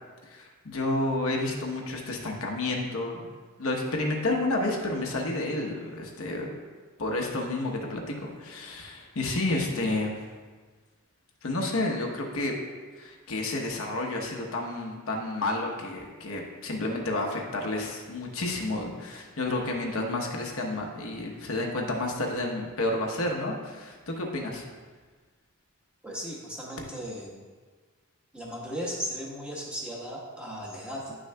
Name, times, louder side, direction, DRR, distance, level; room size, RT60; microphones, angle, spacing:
voice 1, 0.2-3.3 3.6-6.5 7.0-10.2 11.4-12.6 13.0-24.6, left 2 dB, 65° left, 0 dB, 1.0 m, -30 dB
voice 2, 26.0-27.3 28.3-31.1, equal, 5° right, -5 dB, 1.2 m, -36 dB
10.5 x 6.2 x 2.3 m, 1.4 s
head